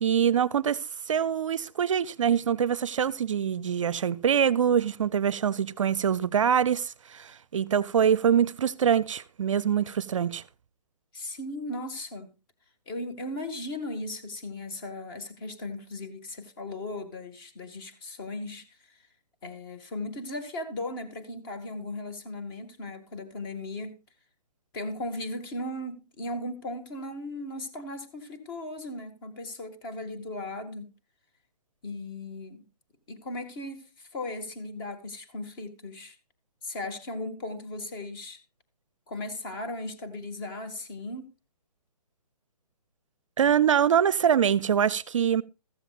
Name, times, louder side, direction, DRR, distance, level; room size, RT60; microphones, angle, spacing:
voice 1, 0.0-10.4 43.4-45.4, right 8 dB, 50° right, 0.6 m, -24 dB
voice 2, 11.1-12.3 12.9-19.0 19.4-24.0 24.7-30.9 31.8-32.6 33.1-36.2 36.6-38.4 39.1-41.3, left 2 dB, 35° left, 2.1 m, -37 dB
15.0 x 14.0 x 2.5 m
figure-of-eight pair, 135°, 20 cm